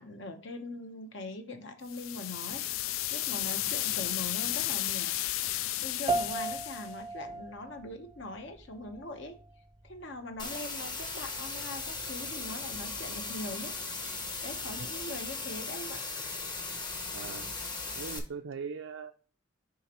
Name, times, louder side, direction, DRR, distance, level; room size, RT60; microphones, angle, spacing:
voice 1, 0.0-5.2 5.8-9.4 9.8-13.8 14.4-16.2, left 2 dB, 60° left, 7 dB, 1.0 m, -42 dB
sound 1, 1.9-6.9, left 15 dB, 75° left, 0.3 m, -33 dB
sound 2, 6.1-15.7, right 3 dB, 20° right, 0.5 m, -40 dB
sound 3, 10.4-18.2, left 3 dB, 20° left, 0.9 m, -38 dB
voice 2, 17.1-17.5 18.0-19.1, right 5 dB, 75° right, 6 dB, 0.4 m, -40 dB
6.8 x 5.0 x 3.0 m, 0.39 s
head